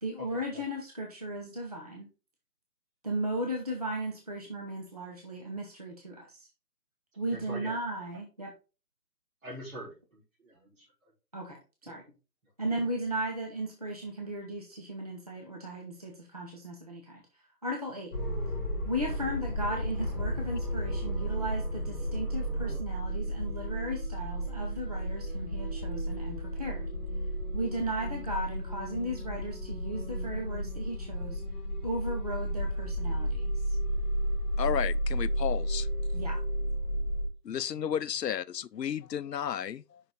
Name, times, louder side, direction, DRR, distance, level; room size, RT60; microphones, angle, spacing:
voice 1, 0.0-2.1 3.0-6.5 7.2-8.5 11.3-11.6 11.8-12.0 12.6-17.2 17.6-18.1 18.8-26.9 27.5-31.4 31.8-33.5 36.1-36.4, right 1 dB, 25° right, 0.7 m, -36 dB
voice 2, 7.3-7.8 9.4-10.9 11.9-12.0 37.5-37.6, equal, 50° right, 3.6 m, -44 dB
sound 1, 18.1-37.3, equal, 25° left, 2.4 m, -33 dB
voice 3, 34.6-35.9 37.4-40.0, left 9 dB, 80° left, 0.6 m, -33 dB
5.8 x 5.7 x 3.7 m
figure-of-eight pair, 155°, 49 cm